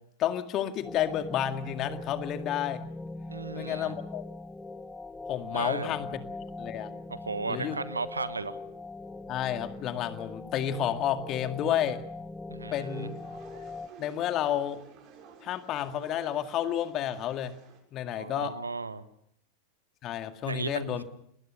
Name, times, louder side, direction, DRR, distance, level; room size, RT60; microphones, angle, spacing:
voice 1, 0.2-2.8 3.5-4.2 5.3-6.2 6.6-6.9 7.5-7.8 9.3-12.0 12.7-13.1 14.0-14.8 15.4-17.5 17.9-18.6 20.0-21.0, left 10 dB, 35° left, 8 dB, 2.0 m, -31 dB
sound 1, 0.8-13.9, left 3 dB, 10° left, 1.0 m, -41 dB
voice 2, 3.3-3.9 5.5-6.0 7.1-8.6 12.5-13.1 18.1-19.0 20.4-21.0, right 4 dB, 80° right, 14 dB, 1.3 m, -35 dB
sound 2, 12.8-17.8, right 6 dB, 40° right, 6.9 m, -54 dB
29.5 x 20.5 x 6.6 m, 0.72 s
figure-of-eight pair, 90°, 0 cm